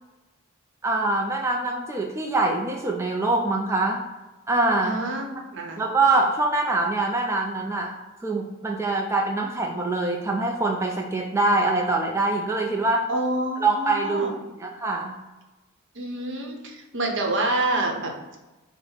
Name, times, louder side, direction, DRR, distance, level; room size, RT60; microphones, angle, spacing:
voice 1, 0.8-4.0 4.5-4.9 5.8-7.9 8.2-13.1 13.6-15.2, right 2 dB, 15° right, 0 dB, 0.3 m, -24 dB
voice 2, 4.8-5.8 13.1-14.4 15.9-18.1, right 2 dB, 55° right, 2 dB, 0.8 m, -27 dB
5.5 x 2.0 x 4.3 m, 1.1 s
head